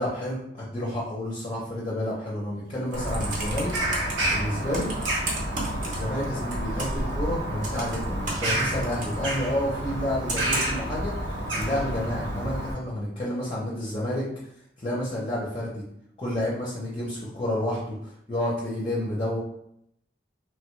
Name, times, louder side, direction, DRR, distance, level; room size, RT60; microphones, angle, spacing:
voice 1, 0.0-3.7 4.3-4.9 5.8-11.1 11.5-14.2 14.8-15.8 16.2-19.4, left 1 dB, 25° left, -6 dB, 0.6 m, -30 dB
Computer keyboard, 2.7-4.1 4.7-6.3 6.5-7.1 7.6-9.2 10.3-10.9 11.6-11.7, right 2 dB, 45° right, 0.7 m, -33 dB
Bird vocalization bird call bird song, 2.9-12.7, right 1 dB, 90° right, 0.9 m, -29 dB
3.2 x 2.2 x 3.0 m, 0.73 s
head